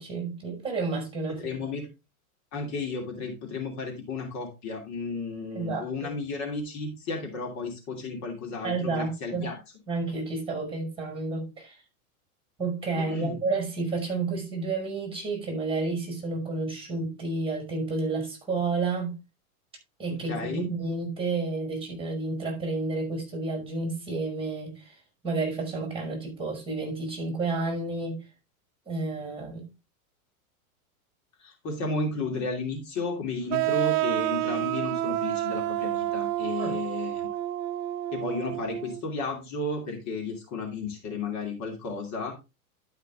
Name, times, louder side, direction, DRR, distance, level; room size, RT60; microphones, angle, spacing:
voice 1, 0.0-1.5 5.5-6.1 8.6-9.5 9.9-11.8 12.6-19.1 20.0-25.0 25.2-28.2 28.9-29.6 36.6-36.8, right 3 dB, 10° right, 5.7 m, -31 dB
voice 2, 1.3-1.9 2.5-9.6 12.9-13.4 20.1-20.7 31.4-37.3 38.1-42.3, left 3 dB, 40° left, 2.9 m, -33 dB
sound 1, 33.5-39.0, right 15 dB, 40° right, 0.8 m, -29 dB
12.0 x 5.8 x 3.6 m
hypercardioid pair, 115°, 43 cm